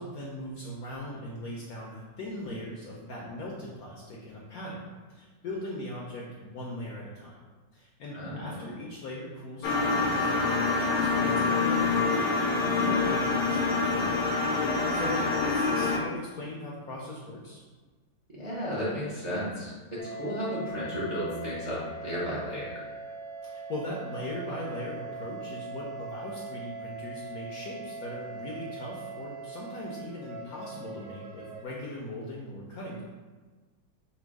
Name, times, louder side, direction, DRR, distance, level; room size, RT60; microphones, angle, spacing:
voice 1, 0.0-7.4 7.7-14.1 14.9-17.6 23.4-33.0, left 1 dB, 70° left, -3 dB, 0.9 m, -39 dB
voice 2, 8.1-8.6 15.0-15.3 18.3-22.8, equal, 40° right, -8 dB, 0.6 m, -34 dB
sound 1, 9.6-16.0, left 4 dB, 85° left, 1.4 m, -26 dB
sound 2, 20.0-31.6, right 3 dB, 85° right, 0.7 m, -41 dB
4.3 x 2.2 x 4.5 m, 1.4 s
omnidirectional pair, 2.0 m